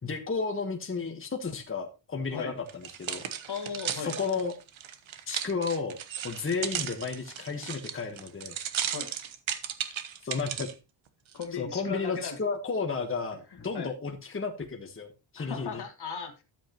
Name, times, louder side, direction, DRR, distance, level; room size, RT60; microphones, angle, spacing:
voice 1, 0.0-3.2 3.9-4.5 5.3-8.6 10.2-10.7 11.5-15.8, left 4 dB, 25° left, 1.4 m, -33 dB
sound 1, 2.7-10.7 11.3-11.4, right 9 dB, 70° right, 1.2 m, -35 dB
voice 2, 3.5-4.1 8.9-9.1 11.3-12.4 13.5-13.9 15.4-16.4, left 6 dB, 55° left, 1.9 m, -37 dB
12.5 x 8.0 x 3.0 m
wide cardioid pair, 115°, 48 cm